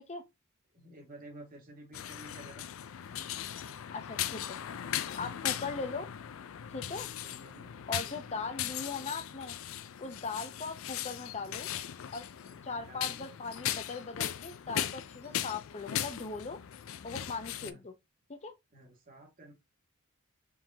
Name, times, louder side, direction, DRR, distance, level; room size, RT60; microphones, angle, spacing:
voice 1, 0.7-2.7 7.1-8.2 10.3-10.6 12.6-13.3 17.6-17.8 18.7-19.5, right 1 dB, 40° right, 1.7 m, -52 dB
sound 1, 1.9-17.7, left 11 dB, 70° left, 0.4 m, -38 dB
voice 2, 3.9-4.8 5.2-6.1 6.7-7.1 7.9-9.6 10.0-11.7 12.1-12.3 12.6-16.6 17.0-17.9 18.3-18.5, left 4 dB, 30° left, 0.7 m, -39 dB
4.7 x 3.7 x 2.7 m
head